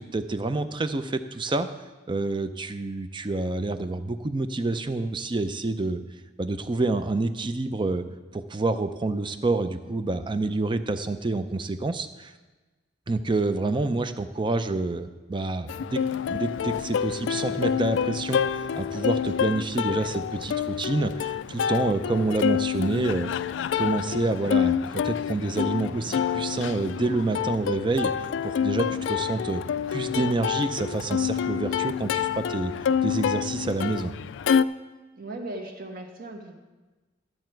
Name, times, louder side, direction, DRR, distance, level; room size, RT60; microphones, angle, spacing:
voice 1, 0.0-1.7 2.1-6.0 6.4-8.0 8.3-12.3 13.1-16.0 16.3-23.3 23.8-29.6 29.9-32.7 33.0-34.1, right 2 dB, 25° right, 10 dB, 0.5 m, -28 dB
Plucked string instrument, 15.7-34.6, left 8 dB, 75° left, 0.3 m, -27 dB
voice 2, 35.2-36.6, right 2 dB, 50° right, 3 dB, 1.5 m, -37 dB
13.0 x 7.6 x 4.5 m, 1.2 s
head